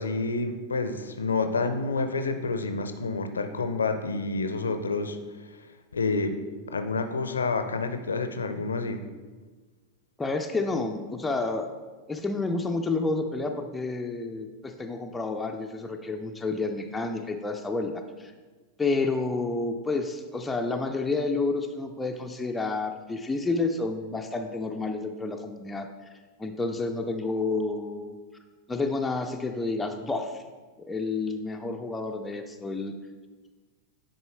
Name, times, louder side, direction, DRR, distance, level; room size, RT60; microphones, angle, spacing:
voice 1, 0.0-5.2 5.9-6.4 6.6-9.0, left 3 dB, 75° left, 8 dB, 0.6 m, -28 dB
voice 2, 10.2-11.7 12.1-18.3 18.8-25.9 26.4-28.2 28.7-30.4 30.9-32.9, left 3 dB, 10° left, 4 dB, 0.5 m, -30 dB
9.8 x 4.2 x 3.3 m, 1.3 s
figure-of-eight pair, 90°, 0 cm